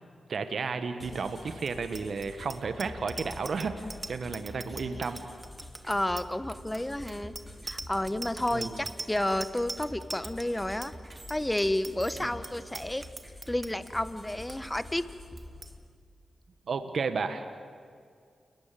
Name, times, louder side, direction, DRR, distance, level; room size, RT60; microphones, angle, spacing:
voice 1, 0.3-5.2 8.5-8.8 12.2-12.3 16.7-17.5, right 4 dB, 65° right, 9 dB, 1.5 m, -33 dB
sound 1, 1.0-15.8, left 1 dB, 10° right, 5.6 m, -47 dB
Bicycle bell, 1.6-13.9 14.3-14.6 14.8-15.1 15.4-15.7, right 3 dB, 40° right, 1.3 m, -42 dB
voice 2, 5.8-7.4 7.6-10.9 11.3-13.0 13.5-15.0, left 1 dB, 15° left, 13 dB, 1.4 m, -31 dB
28.5 x 20.5 x 7.7 m, 2.2 s
supercardioid pair, 40°, 0 cm